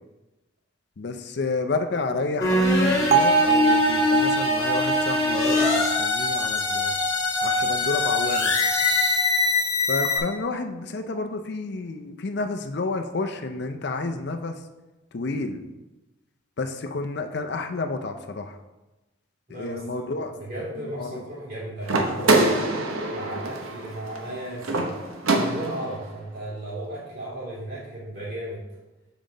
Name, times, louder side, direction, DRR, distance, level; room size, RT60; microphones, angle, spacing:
voice 1, 1.0-7.0 7.4-8.5 9.9-14.6 15.1-15.7 16.6-18.6 19.5-20.4 20.8-21.2, left 3 dB, 55° left, 7 dB, 0.5 m, -30 dB
sound 1, 2.4-10.2, left 3 dB, 20° left, 1.6 m, -23 dB
Bell, 3.1-7.2, right 6 dB, 30° right, 0.3 m, -24 dB
voice 2, 19.5-22.6 23.1-24.9 25.3-28.6, right 1 dB, 45° right, -6 dB, 2.5 m, -35 dB
sound 2, 21.8-26.0, right 2 dB, 90° right, 0.9 m, -25 dB
7.2 x 5.1 x 3.8 m, 1.1 s
head